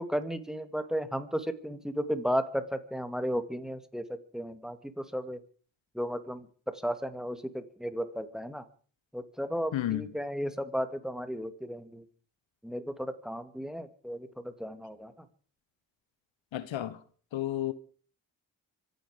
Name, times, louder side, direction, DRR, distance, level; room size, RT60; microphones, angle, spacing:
voice 1, 0.0-5.4 5.9-8.7 9.1-12.0 12.6-15.3, equal, ahead, 2.3 m, -34 dB
voice 2, 9.7-10.0 16.5-17.0 17.3-17.7, left 13 dB, 70° left, 1.2 m, -31 dB
25.5 x 9.5 x 5.1 m
supercardioid pair, 45°, 47 cm